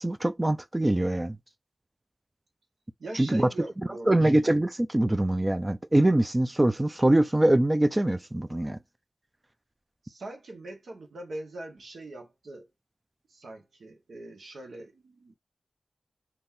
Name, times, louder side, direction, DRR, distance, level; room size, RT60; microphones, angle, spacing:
voice 1, 0.0-1.4 3.1-3.5 4.1-8.8, right 1 dB, 25° right, 0.5 m, -23 dB
voice 2, 3.0-4.3 10.0-12.7 13.3-15.3, right 2 dB, 85° right, 1.3 m, -42 dB
3.8 x 2.9 x 2.7 m
cardioid pair, 50°, 0 cm